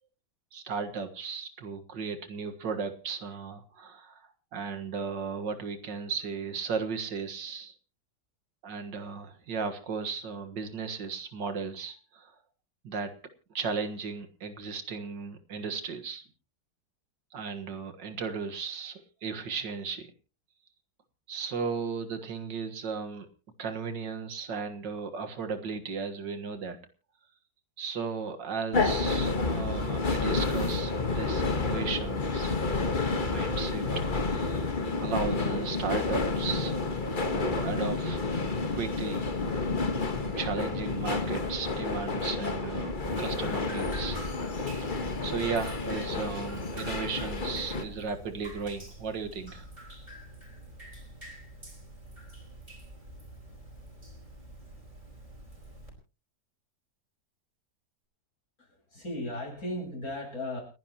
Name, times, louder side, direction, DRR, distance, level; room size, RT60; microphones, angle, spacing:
voice 1, 0.5-7.8 8.6-12.3 12.8-13.2 13.5-16.2 17.3-20.1 21.3-23.3 23.6-26.8 27.8-33.9 34.3-34.7 35.0-36.8 37.3-38.3 38.7-39.6 40.1-44.2 45.2-49.6, right 5 dB, 80° right, 7 dB, 2.3 m, -35 dB
sound 1, 28.7-47.8, left 3 dB, 30° left, 1.4 m, -30 dB
Drip, 43.1-55.9, right 1 dB, 25° right, 5.1 m, -46 dB
voice 2, 58.6-60.6, left 1 dB, 55° left, -2 dB, 8.5 m, -36 dB
29.5 x 11.0 x 3.0 m, 0.33 s
omnidirectional pair, 1.9 m